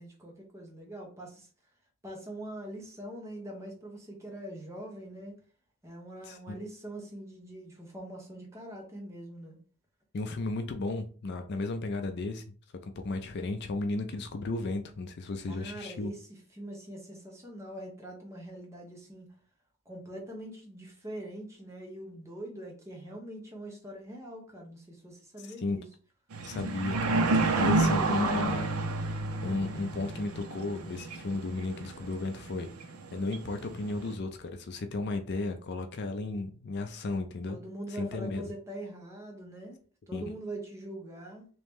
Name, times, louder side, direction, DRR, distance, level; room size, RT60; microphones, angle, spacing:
voice 1, 0.0-1.5 2.0-5.4 5.8-9.6 15.4-16.2 16.5-19.3 19.9-25.9 27.2-28.6 37.5-39.8 40.1-41.5, right 1 dB, 15° right, -1 dB, 0.9 m, -43 dB
voice 2, 6.2-6.6 10.1-12.5 12.8-16.1 25.4-25.8 26.5-28.7 29.4-32.7 33.1-37.6 37.9-38.5 40.1-40.2, left 2 dB, 50° left, 6 dB, 0.4 m, -34 dB
sound 1, 26.3-34.1, right 3 dB, 70° right, 0.5 m, -30 dB
3.1 x 2.8 x 3.4 m, 0.39 s
head